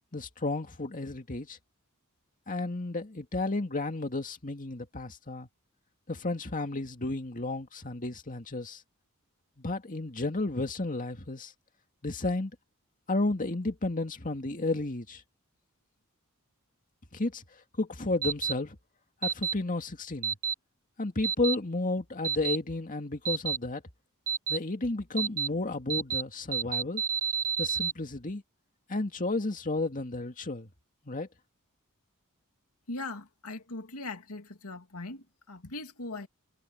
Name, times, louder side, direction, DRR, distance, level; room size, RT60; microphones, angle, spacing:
voice 1, 0.1-1.6 2.5-5.5 6.1-8.8 9.6-11.5 12.0-12.5 13.1-15.2 17.1-17.4 17.8-18.8 19.2-20.4 21.0-23.8 24.5-27.0 27.6-28.4 28.9-30.7 31.1-31.3, left 2 dB, 40° left, 2.2 m, -32 dB
sound 1, 18.2-18.5 19.2-19.5 20.2-20.5 21.2-21.5 22.2-22.6 23.3-23.6 24.3-24.6 25.2-25.5 25.9-26.2 26.5-27.9, right 7 dB, 40° right, 1.1 m, -29 dB
voice 2, 32.9-36.3, left 2 dB, 80° left, 2.7 m, -40 dB
head